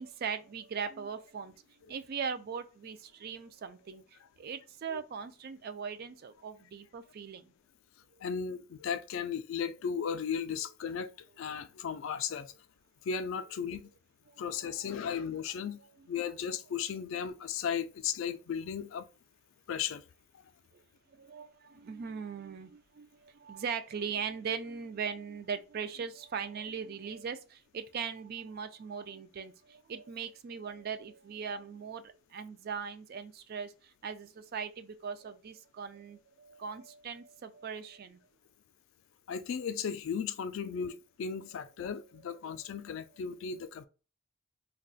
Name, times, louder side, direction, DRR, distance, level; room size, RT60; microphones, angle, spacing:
voice 1, 0.0-7.5 14.3-15.2 20.7-20.8 21.1-38.2 42.5-42.7 43.5-43.6, right 6 dB, 45° right, 0.3 m, -40 dB
voice 2, 8.2-11.1 11.4-12.5 13.0-13.9 14.4-15.8 16.1-19.0 19.7-20.0 20.3-20.4 39.3-43.9, left 7 dB, 60° left, 0.3 m, -35 dB
3.9 x 2.2 x 2.4 m
head